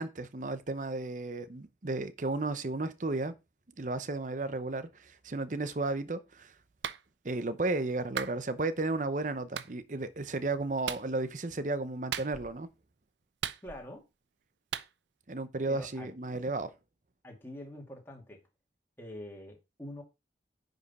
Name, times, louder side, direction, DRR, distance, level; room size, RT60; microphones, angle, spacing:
voice 1, 0.0-3.3 3.8-6.5 7.2-12.7 15.3-16.7, right 2 dB, 45° right, 0.7 m, -33 dB
Clapping, 6.8-7.0 8.2-8.4 9.6-9.7 10.9-11.1 12.1-12.6 13.4-14.0 14.7-14.9, right 9 dB, 80° right, 0.6 m, -36 dB
voice 2, 13.6-14.0 15.7-16.1 17.2-18.4 19.0-20.0, left 1 dB, 10° left, 2.1 m, -45 dB
9.8 x 5.4 x 4.2 m
head